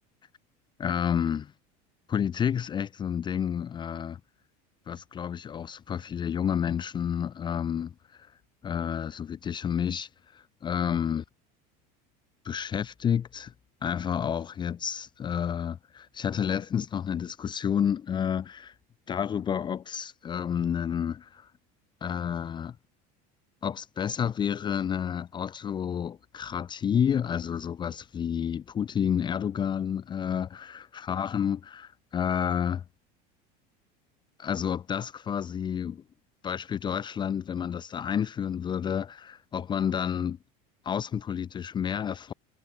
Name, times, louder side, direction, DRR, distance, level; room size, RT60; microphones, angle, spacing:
voice 1, 0.8-1.5 2.1-4.2 4.9-8.3 8.6-11.2 12.4-13.5 13.8-18.7 19.1-21.5 22.0-22.8 23.6-32.8 34.4-36.0 36.4-40.4 40.8-42.3, left 8 dB, 25° left, 0.9 m, -30 dB
cardioid pair, 150°, 20 cm